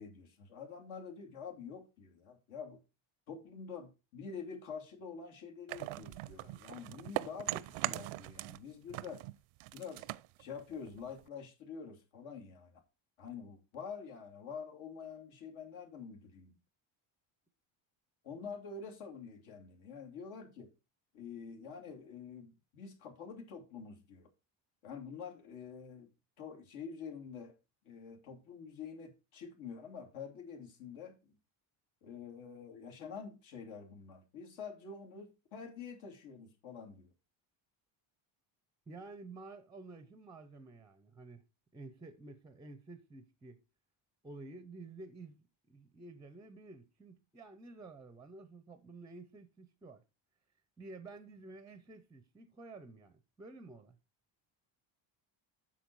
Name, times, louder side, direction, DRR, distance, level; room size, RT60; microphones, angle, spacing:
voice 1, 0.0-2.8 3.3-9.2 9.7-10.1 10.4-12.8 13.2-16.6 18.2-20.7 21.1-24.3 24.8-26.1 26.4-27.5 27.8-31.2 32.0-37.1, left 6 dB, 70° left, 2.8 m, -47 dB
sound 1, 5.7-8.6 8.9-11.3, right 20 dB, 90° right, 0.6 m, -41 dB
voice 2, 38.9-41.4 41.7-43.6 44.2-50.0 50.8-54.0, right 3 dB, 10° right, 0.5 m, -51 dB
8.3 x 6.0 x 4.6 m
cardioid pair, 155°, 49 cm